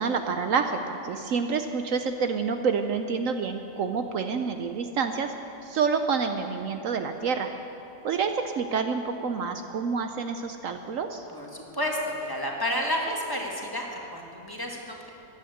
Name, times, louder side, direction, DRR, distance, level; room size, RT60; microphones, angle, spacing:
voice 1, 0.0-5.3 5.6-7.5 8.0-11.3, right 5 dB, 65° right, 7 dB, 1.0 m, -28 dB
voice 2, 11.3-15.1, equal, 15° left, -1 dB, 1.7 m, -31 dB
15.0 x 11.0 x 7.9 m, 2.9 s
omnidirectional pair, 1.6 m